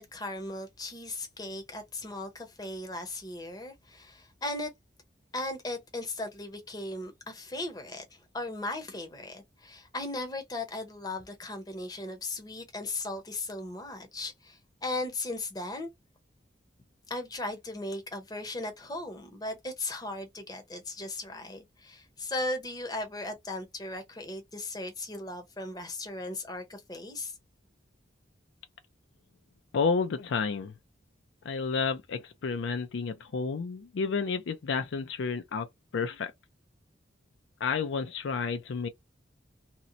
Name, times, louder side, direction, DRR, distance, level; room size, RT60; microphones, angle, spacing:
voice 1, 0.0-4.7 5.3-15.9 17.1-27.3, left 2 dB, 20° left, 0.7 m, -37 dB
voice 2, 29.7-30.7 31.5-35.7 35.9-36.3 37.6-38.9, left 5 dB, 75° left, 0.4 m, -30 dB
2.8 x 2.0 x 2.5 m
head